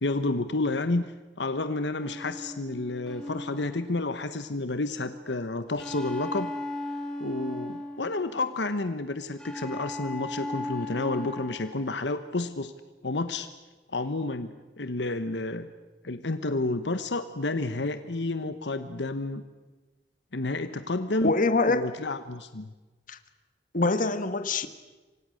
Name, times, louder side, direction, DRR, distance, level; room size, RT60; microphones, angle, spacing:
voice 1, 0.0-1.1 1.4-6.5 7.2-12.7 13.0-13.5 13.9-15.7 16.0-19.4 20.3-21.3 21.7-22.7, left 2 dB, 75° left, 10 dB, 1.2 m, -30 dB
sound 1, 2.0-4.5 5.8-8.6 9.4-12.0, left 1 dB, 5° left, 4.1 m, -37 dB
voice 2, 21.2-21.8 23.1-23.2 23.7-24.7, left 3 dB, 50° left, 10 dB, 1.6 m, -24 dB
28.0 x 25.0 x 6.5 m, 1.2 s
head